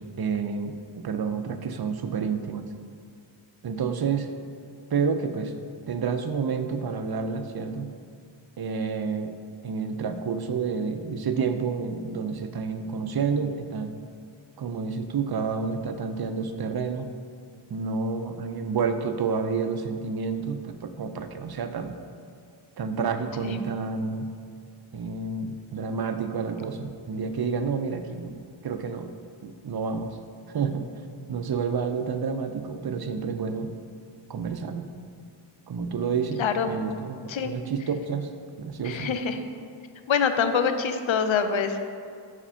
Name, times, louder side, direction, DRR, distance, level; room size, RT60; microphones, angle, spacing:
voice 1, 0.0-2.6 3.6-4.3 4.9-5.5 5.9-7.9 8.6-9.3 9.6-13.9 14.6-17.1 17.7-21.9 22.8-24.3 24.9-28.4 28.6-29.1 29.4-30.2 30.5-30.8 31.3-33.7 34.3-34.9 35.7-38.3 38.6-39.1, right 5 dB, 50° right, 8 dB, 0.5 m, -29 dB
voice 2, 36.4-36.7 37.3-37.5 38.8-39.4 40.1-41.8, left 6 dB, 70° left, 8 dB, 0.6 m, -25 dB
4.9 x 4.3 x 5.5 m, 2.3 s
wide cardioid pair, 75°, 48 cm